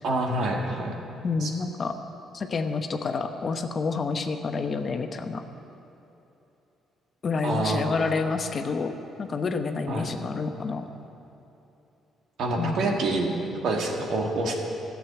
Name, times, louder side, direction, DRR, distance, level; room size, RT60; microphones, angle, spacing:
voice 1, 0.0-1.0 1.4-1.5 7.4-8.0 9.9-10.1 12.4-13.3 13.6-14.5, right 2 dB, 70° right, 1 dB, 1.9 m, -27 dB
voice 2, 1.2-1.9 2.3-5.4 7.2-10.9 12.6-13.0, left 4 dB, 45° left, 6 dB, 0.9 m, -29 dB
13.0 x 7.5 x 8.4 m, 3.0 s
cardioid pair, 75°, 0 cm